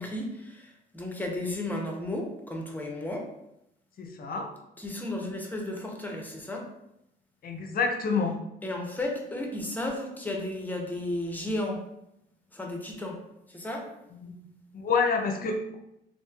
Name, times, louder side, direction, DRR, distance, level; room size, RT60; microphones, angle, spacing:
voice 1, 0.0-3.3 4.8-6.7 8.6-11.8 12.5-13.2 13.5-13.9, left 1 dB, 10° left, 1 dB, 0.6 m, -33 dB
voice 2, 4.0-4.5 7.4-8.3 14.1-14.4 14.7-15.8, left 5 dB, 50° left, 4 dB, 0.5 m, -28 dB
3.0 x 2.4 x 2.3 m, 0.82 s
cardioid pair, 90°, 20 cm